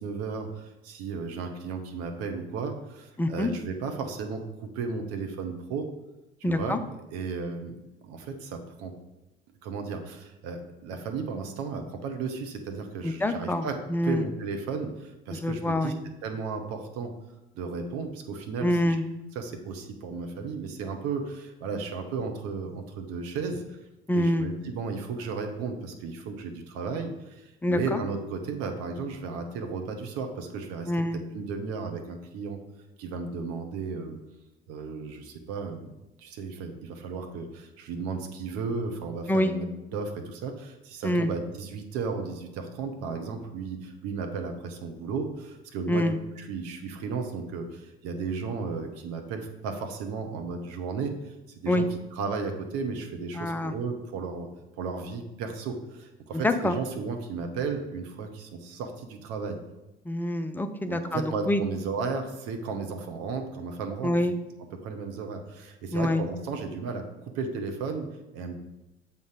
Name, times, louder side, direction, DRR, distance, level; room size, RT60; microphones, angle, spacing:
voice 1, 0.0-5.9 6.5-6.8 7.1-7.8 8.0-8.9 9.6-13.8 14.0-15.9 16.2-17.1 17.5-19.0 19.3-23.8 24.1-30.9 31.3-32.6 33.0-34.2 34.7-35.9 36.2-39.7 39.9-51.8 52.1-54.5 54.8-59.6 60.9-64.3 64.8-68.1 68.3-68.5, right 4 dB, 50° right, 5 dB, 1.1 m, -34 dB
voice 2, 3.2-3.5 6.4-6.8 13.0-14.2 15.3-16.0 18.6-19.0 24.1-24.5 27.6-28.0 30.9-31.2 39.3-39.5 41.0-41.3 45.9-46.2 51.7-51.9 53.4-53.7 56.3-56.8 60.1-61.6 64.0-64.3 65.9-66.2, left 1 dB, 5° left, 8 dB, 0.5 m, -26 dB
7.0 x 4.0 x 5.0 m, 1.0 s
figure-of-eight pair, 65°, 30 cm